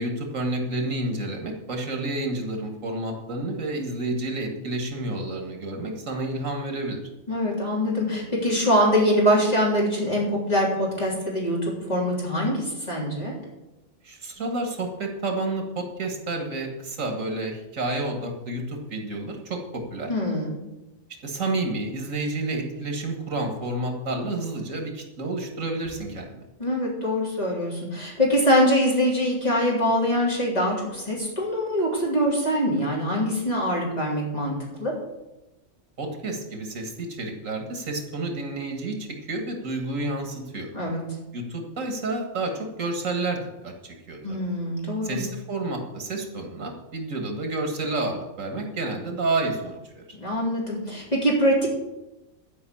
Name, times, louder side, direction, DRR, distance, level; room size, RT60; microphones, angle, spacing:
voice 1, 0.0-7.0 14.0-20.1 21.2-26.4 36.0-40.7 41.3-44.4 45.0-50.0, right 2 dB, 75° right, 3 dB, 2.1 m, -30 dB
voice 2, 7.3-13.4 20.1-20.6 26.6-34.9 40.7-41.0 44.2-45.2 50.2-51.7, equal, 30° left, -4 dB, 3.5 m, -23 dB
12.0 x 5.5 x 8.5 m, 1.0 s
omnidirectional pair, 1.4 m